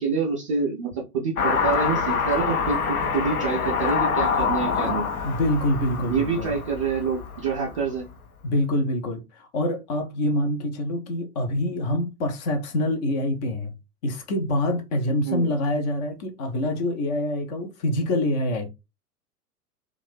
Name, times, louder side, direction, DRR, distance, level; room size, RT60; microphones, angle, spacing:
voice 1, 0.0-5.1 6.1-8.1 15.3-15.5, right 5 dB, 25° right, 0.3 m, -27 dB
Car passing by / Accelerating revving vroom, 1.4-8.0, left 6 dB, 65° left, 0.8 m, -26 dB
voice 2, 5.2-6.6 8.4-13.7 14.0-18.7, left 1 dB, 30° left, 0.5 m, -25 dB
2.5 x 2.4 x 3.4 m
figure-of-eight pair, 95°, 46 cm